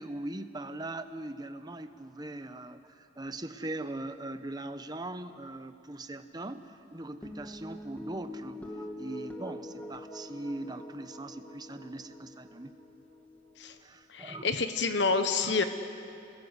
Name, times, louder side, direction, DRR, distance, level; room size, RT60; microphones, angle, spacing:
voice 1, 0.0-8.6 9.0-12.7 13.8-14.5 15.4-15.6, right 2 dB, 20° right, 9 dB, 1.0 m, -40 dB
sound 1, 7.2-13.8, left 1 dB, 10° left, 2.2 m, -44 dB
voice 2, 14.1-15.6, left 4 dB, 75° left, 8 dB, 1.2 m, -28 dB
28.5 x 21.0 x 8.1 m, 2.7 s
head